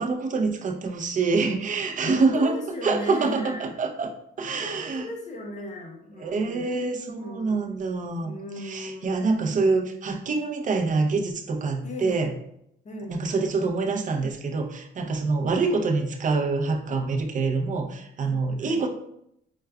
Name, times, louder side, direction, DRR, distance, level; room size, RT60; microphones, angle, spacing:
voice 1, 0.0-2.5 2.8-4.1 4.4-5.1 6.2-8.3 8.6-12.3 13.1-18.9, right 3 dB, 40° right, 2 dB, 0.5 m, -26 dB
voice 2, 2.0-3.7 4.5-6.9 7.2-7.6 8.2-9.8 11.8-12.3 12.8-13.3 18.2-18.8, left 1 dB, 35° left, 1 dB, 0.8 m, -38 dB
4.7 x 2.2 x 2.2 m, 0.75 s
cardioid pair, 90°, 20 cm